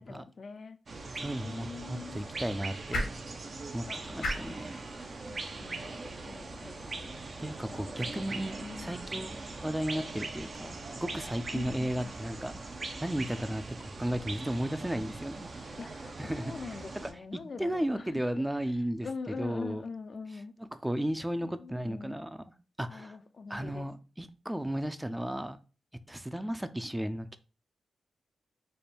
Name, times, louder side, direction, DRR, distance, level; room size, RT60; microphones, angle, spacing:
voice 1, 0.0-1.1 1.4-2.2 3.9-4.6 5.0-9.1 11.5-12.1 15.5-18.1 18.3-18.4 19.0-20.5 21.4-22.2 22.9-23.9, left 4 dB, 60° left, 0.4 m, -44 dB
sound 1, 0.9-17.1, right 3 dB, 55° right, 0.6 m, -41 dB
sound 2, 1.1-7.3, left 1 dB, 80° left, 1.1 m, -42 dB
voice 2, 1.2-3.2 3.7-4.8 7.4-12.6 13.0-15.5 16.2-17.1 17.6-19.8 20.7-23.2 23.5-25.6 26.1-27.4, right 1 dB, 10° right, 0.4 m, -34 dB
3.4 x 2.2 x 4.1 m
supercardioid pair, 45°, 0 cm